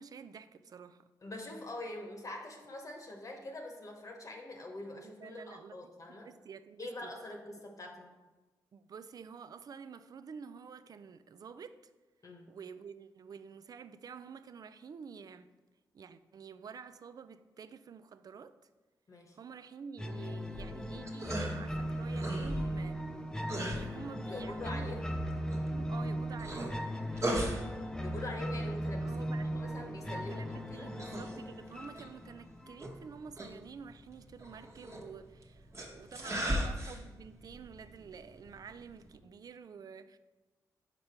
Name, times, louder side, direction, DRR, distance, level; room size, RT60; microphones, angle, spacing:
voice 1, 0.0-1.1 5.0-5.8 6.1-7.1 7.5-7.7 8.7-11.9 12.5-15.5 15.9-18.6 19.3-23.0 23.5-25.1 25.5-26.9 29.0-29.5 30.1-35.7 35.9-40.2, right 6 dB, 50° right, 0.4 m, -49 dB
voice 2, 1.2-6.3 6.8-8.1 12.2-12.5 19.1-19.4 24.3-25.1 27.1-27.5 28.0-29.3 29.5-30.9 36.2-36.5, left 2 dB, 45° left, 1.0 m, -44 dB
sound 1, 20.0-33.0, equal, 10° left, 0.5 m, -38 dB
sound 2, 20.4-39.2, equal, 35° right, 1.2 m, -41 dB
5.1 x 4.5 x 4.3 m
supercardioid pair, 55°, 8 cm